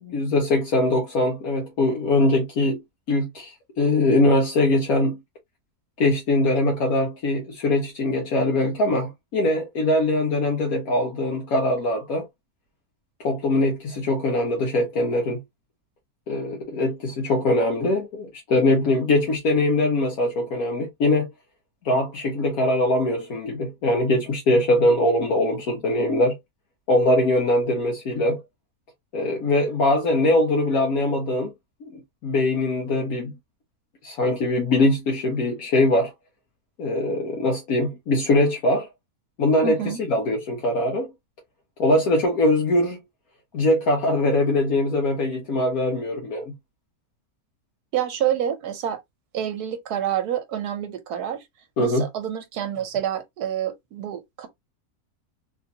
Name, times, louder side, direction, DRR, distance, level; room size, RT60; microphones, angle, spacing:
voice 1, 0.0-2.8 3.1-5.2 6.0-12.3 13.2-15.4 16.3-21.3 21.8-26.3 26.9-28.4 29.1-31.5 31.8-33.3 34.0-36.1 36.8-38.9 39.4-41.1 41.8-43.0 43.5-46.5 51.8-52.1, left 1 dB, 70° left, 1.3 m, -22 dB
voice 2, 39.6-40.0 47.9-49.0 49.3-51.4 51.8-54.5, right 10 dB, 85° right, 1.3 m, -28 dB
3.5 x 2.5 x 2.7 m
omnidirectional pair, 1.6 m